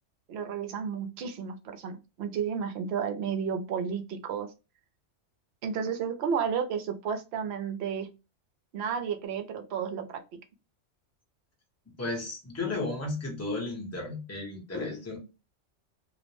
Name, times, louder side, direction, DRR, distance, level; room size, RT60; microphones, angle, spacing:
voice 1, 0.3-4.5 5.6-8.1 8.7-10.2, right 7 dB, 70° right, 6 dB, 0.8 m, -32 dB
voice 2, 12.0-15.2, left 2 dB, 15° left, -1 dB, 0.7 m, -34 dB
2.5 x 2.0 x 2.9 m, 0.28 s
omnidirectional pair, 1.2 m